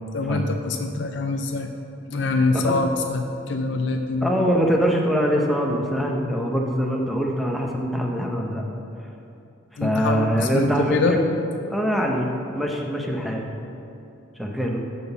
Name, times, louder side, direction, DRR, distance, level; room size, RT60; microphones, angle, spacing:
voice 1, 0.1-1.7 2.1-4.3 9.8-11.1, left 3 dB, 60° left, 4 dB, 0.4 m, -24 dB
voice 2, 4.2-8.6 9.8-11.4 11.7-13.5 14.4-14.9, equal, ahead, 0 dB, 0.7 m, -23 dB
6.0 x 5.4 x 7.0 m, 2.8 s
head